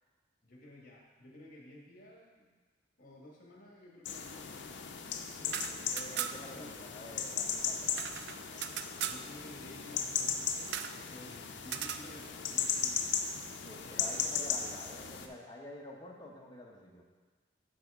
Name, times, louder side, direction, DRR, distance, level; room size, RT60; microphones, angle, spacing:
voice 1, 0.4-2.5 3.0-4.8 5.6-6.7 9.0-13.2 13.7-14.9, left 1 dB, 50° left, -2 dB, 1.5 m, -54 dB
sound 1, 4.1-15.3, left 7 dB, 65° left, 0.5 m, -37 dB
voice 2, 5.4-8.1 13.6-17.0, left 1 dB, 20° left, -1 dB, 0.8 m, -49 dB
sound 2, 5.4-6.6 6.9-7.0 7.2-9.2 10.7-11.0 11.6-12.1, right 9 dB, 60° right, 0.3 m, -39 dB
10.0 x 4.1 x 3.5 m, 1.4 s
head